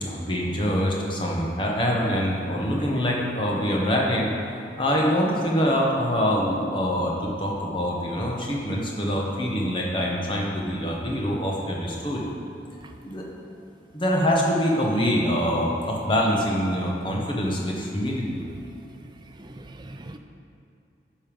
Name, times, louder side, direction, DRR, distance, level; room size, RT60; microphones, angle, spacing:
voice 1, 0.0-4.3 4.8-12.3 13.0-13.2 13.9-18.4, equal, 30° left, 1.2 m, -25 dB
voice 2, 18.4-18.7 19.0-20.2, right 2 dB, 25° right, 0.4 m, -43 dB
9.8 x 5.4 x 5.4 m
head